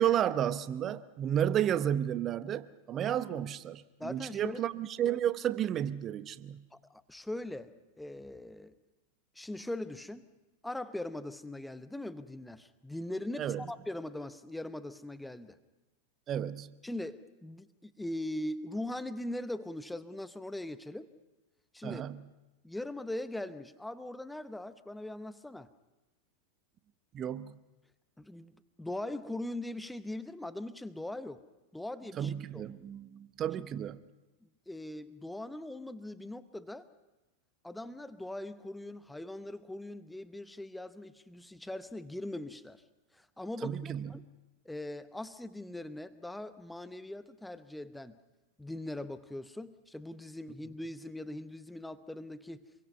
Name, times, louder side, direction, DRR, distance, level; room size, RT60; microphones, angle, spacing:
voice 1, 0.0-6.7 13.4-13.6 16.3-16.8 21.8-22.3 27.1-27.6 32.1-34.0 43.6-44.2, right 10 dB, 30° right, 0.8 m, -32 dB
voice 2, 4.0-4.6 6.7-8.7 9.4-10.3 10.6-15.6 16.8-21.1 21.7-22.0 22.6-25.7 28.2-28.5 28.8-31.4 31.7-32.6 34.4-36.9 37.6-42.8 43.1-44.2 44.6-48.2 48.6-52.6, left 1 dB, 5° left, 0.8 m, -41 dB
26.5 x 23.0 x 5.5 m
figure-of-eight pair, 90°, 0 cm